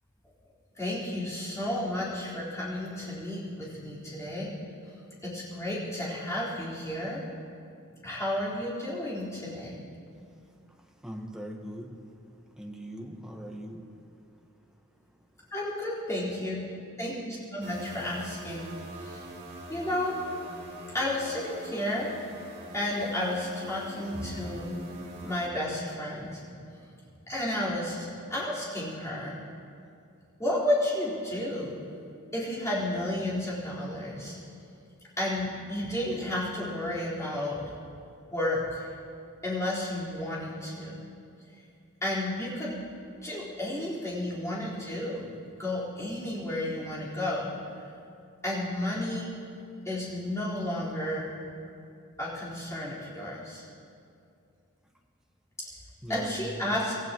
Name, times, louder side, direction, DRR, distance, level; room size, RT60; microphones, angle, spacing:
voice 1, 0.8-4.5 5.2-7.2 8.0-9.7 15.5-16.6 17.0-18.6 19.0-19.2 19.7-20.2 20.9-22.1 22.7-24.8 25.2-26.4 27.3-29.4 30.4-31.7 32.3-34.4 35.2-37.6 38.3-38.9 39.4-41.0 42.0-42.7 43.2-45.3 45.6-47.5 48.4-49.3 49.8-51.3 52.2-53.6 56.1-56.9, left 1 dB, 15° left, -9 dB, 4.4 m, -32 dB
voice 2, 10.7-12.1 12.6-13.9 56.0-56.8, equal, 5° right, 0 dB, 1.3 m, -40 dB
sound 1, 17.6-25.5, right 1 dB, 50° right, 2.3 m, -44 dB
25.0 x 15.5 x 3.1 m, 2.5 s
head